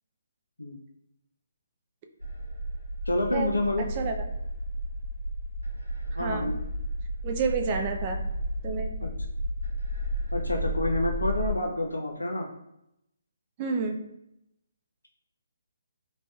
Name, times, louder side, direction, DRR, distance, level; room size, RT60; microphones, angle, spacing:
sound 1, 2.2-11.5, equal, 90° right, 1.0 m, -33 dB
voice 1, 3.1-3.8 6.1-6.5 9.0-9.1 10.3-12.5, left 1 dB, 85° left, 0 dB, 0.4 m, -28 dB
voice 2, 6.2-6.5 7.2-8.2 8.6-8.9 13.6-14.0, right 5 dB, 30° right, 4 dB, 0.4 m, -29 dB
3.0 x 2.7 x 2.2 m, 0.82 s
figure-of-eight pair, 140°, 0 cm